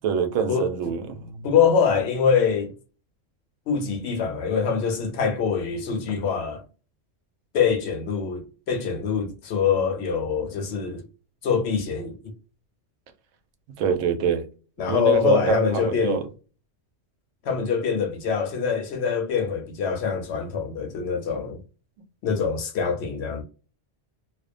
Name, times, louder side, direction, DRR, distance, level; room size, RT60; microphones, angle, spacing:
voice 1, 0.0-1.5 13.8-14.4 14.9-16.2, right 7 dB, 80° right, 0.9 m, -25 dB
voice 2, 1.4-2.7 3.7-6.6 7.5-11.0 11.4-12.3 14.8-16.2 17.4-21.6 22.2-23.4, left 6 dB, 65° left, 0.8 m, -24 dB
2.4 x 2.1 x 2.4 m
omnidirectional pair, 1.3 m